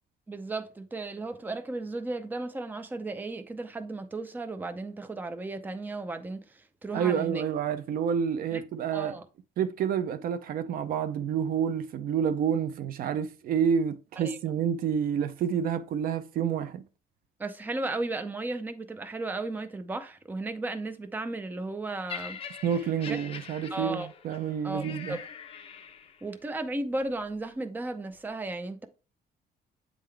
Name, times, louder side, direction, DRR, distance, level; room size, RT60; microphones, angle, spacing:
voice 1, 0.3-7.4 8.5-8.6 8.9-9.2 14.2-14.4 17.4-22.4 23.1-23.2 23.7-24.1 24.6-25.2 26.2-28.9, right 2 dB, 10° right, 0.5 m, -35 dB
voice 2, 6.9-9.2 9.6-16.8 22.6-25.2, right 8 dB, 60° right, 0.5 m, -29 dB
Laughter, 22.1-26.3 27.1-27.3, left 7 dB, 35° left, 0.8 m, -43 dB
8.4 x 3.7 x 3.3 m
cardioid pair, 150°, 17 cm